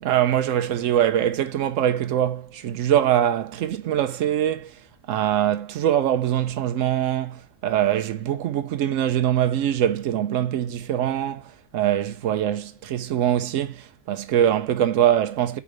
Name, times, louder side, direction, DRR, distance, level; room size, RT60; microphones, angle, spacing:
voice 1, 0.0-4.7 5.1-15.6, right 11 dB, 90° right, 1.0 m, -23 dB
4.9 x 4.8 x 5.0 m
omnidirectional pair, 1.3 m